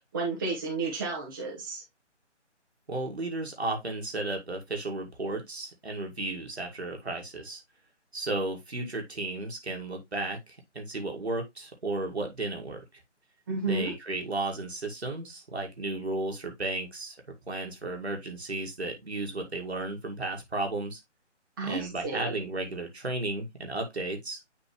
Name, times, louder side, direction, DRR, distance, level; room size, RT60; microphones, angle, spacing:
voice 1, 0.1-1.8 13.5-13.9 21.6-22.4, right 3 dB, 15° right, 1.3 m, -32 dB
voice 2, 2.9-7.6 8.1-12.8 13.7-17.2 17.5-21.0 21.6-24.4, right 2 dB, 60° right, 2.1 m, -34 dB
9.0 x 3.7 x 3.1 m
figure-of-eight pair, 150°, 36 cm